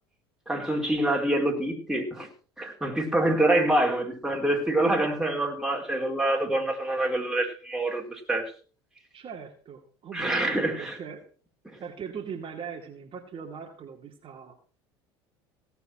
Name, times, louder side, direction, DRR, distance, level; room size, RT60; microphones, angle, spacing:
voice 1, 0.5-2.3 2.6-8.5 10.1-11.0 11.7-11.8, right 1 dB, 5° right, 1 dB, 4.2 m, -26 dB
voice 2, 9.1-11.2 11.8-14.5, right 6 dB, 40° right, 3 dB, 2.3 m, -40 dB
17.0 x 6.9 x 6.0 m, 0.40 s
hypercardioid pair, 85°, 13 cm